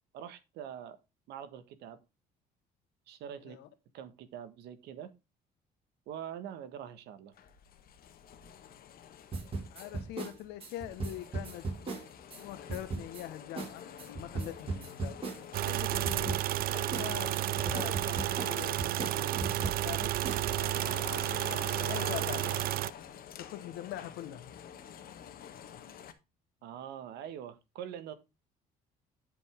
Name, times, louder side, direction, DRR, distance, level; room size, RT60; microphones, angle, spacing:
voice 1, 0.1-1.0 1.3-2.0 3.1-3.6 3.9-5.1 6.1-7.3 26.6-28.1, right 9 dB, 85° right, 1.5 m, -44 dB
sound 1, 7.3-26.1, left 9 dB, 60° left, 1.5 m, -48 dB
sound 2, 9.3-12.4 12.7-13.2 13.6-13.7 14.0-15.8 16.0-16.6 16.9-19.9 20.2-20.4, right 3 dB, 35° right, 4.8 m, -37 dB
voice 2, 9.7-11.7 12.3-15.2 15.6-16.4 16.7-20.2 21.8-22.7 23.4-24.5, left 13 dB, 90° left, 1.3 m, -43 dB
sound 3, 15.5-22.9, right 15 dB, 60° right, 0.4 m, -32 dB
10.5 x 5.4 x 3.5 m
cardioid pair, 110°, 17 cm